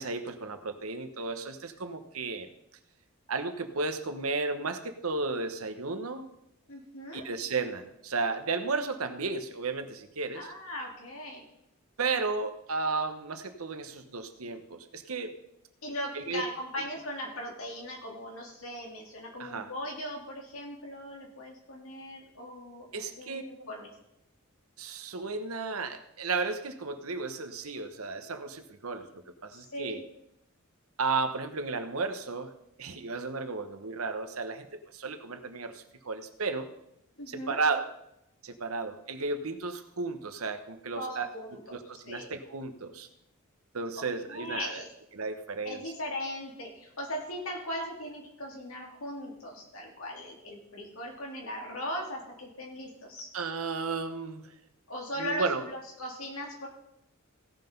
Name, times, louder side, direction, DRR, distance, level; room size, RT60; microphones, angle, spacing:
voice 1, 0.0-2.5 3.3-6.3 7.1-10.5 12.0-15.3 16.1-16.4 19.4-19.7 22.9-23.4 24.8-29.1 29.4-30.0 31.0-32.5 32.8-34.7 34.9-36.7 37.3-37.9 38.4-41.3 41.7-43.1 43.7-44.8 45.1-45.8 53.3-54.5 55.2-55.7, right 4 dB, 90° right, 9 dB, 1.1 m, -33 dB
voice 2, 6.7-7.2 10.3-11.4 15.8-23.9 29.5-30.0 37.2-37.6 40.9-41.8 42.0-42.3 44.0-44.9 45.6-53.3 54.9-56.7, equal, 70° left, -1 dB, 3.4 m, -39 dB
16.5 x 5.8 x 5.4 m, 0.81 s
head